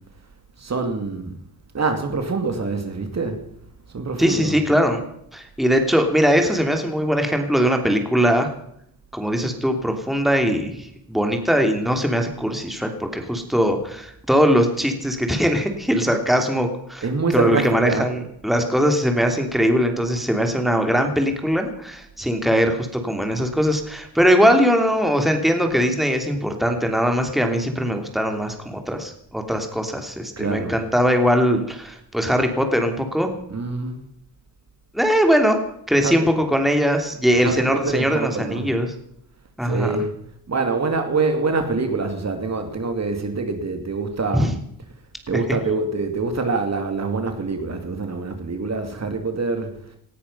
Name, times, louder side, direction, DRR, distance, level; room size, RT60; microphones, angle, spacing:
voice 1, 0.6-1.3 1.7-3.4 3.9-4.6 17.0-18.1 30.4-30.8 33.5-34.0 35.9-36.3 37.3-38.7 39.6-40.1 40.5-44.5 45.3-49.7, right 3 dB, 40° right, 2.6 m, -25 dB
voice 2, 4.2-5.0 5.3-8.5 9.1-17.0 17.3-33.3 34.9-35.6 35.9-38.9 39.6-39.9 44.3-44.5, equal, ahead, 2.9 m, -21 dB
19.0 x 13.5 x 5.6 m
cardioid pair, 80°, 39 cm